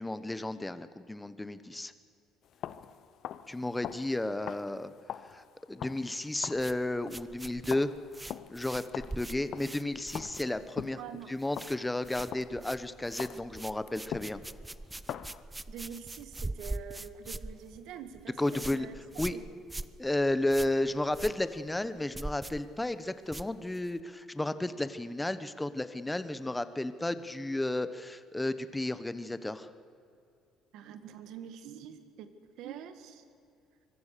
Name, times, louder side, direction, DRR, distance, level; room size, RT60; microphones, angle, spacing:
voice 1, 0.0-1.9 3.5-4.9 5.2-7.9 8.5-14.4 18.4-18.9 19.2-19.4 20.0-29.7, left 1 dB, 10° left, 12 dB, 1.0 m, -33 dB
sound 1, 2.4-12.7 13.2-15.4, left 10 dB, 50° left, 0.8 m, -44 dB
sound 2, 6.5-10.9 11.2-11.8 12.0-24.0, right 2 dB, 10° right, 0.5 m, -43 dB
voice 2, 10.9-11.4 15.7-19.0 19.3-19.4 30.7-33.2, right 8 dB, 70° right, 9 dB, 2.0 m, -45 dB
24.5 x 22.5 x 6.8 m, 2.5 s
cardioid pair, 150°, 0 cm